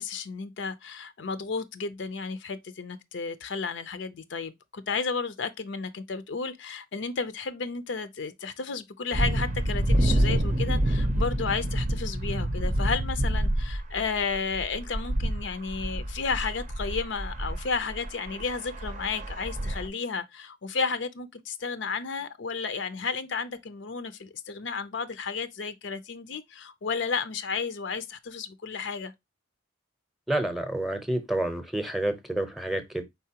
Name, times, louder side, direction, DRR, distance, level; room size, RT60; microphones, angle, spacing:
voice 1, 0.0-29.1, left 5 dB, 70° left, 0.6 m, -32 dB
sound 1, 9.1-19.9, right 1 dB, 40° right, 0.6 m, -28 dB
voice 2, 30.3-33.0, right 1 dB, ahead, 0.7 m, -29 dB
4.7 x 4.0 x 2.8 m
head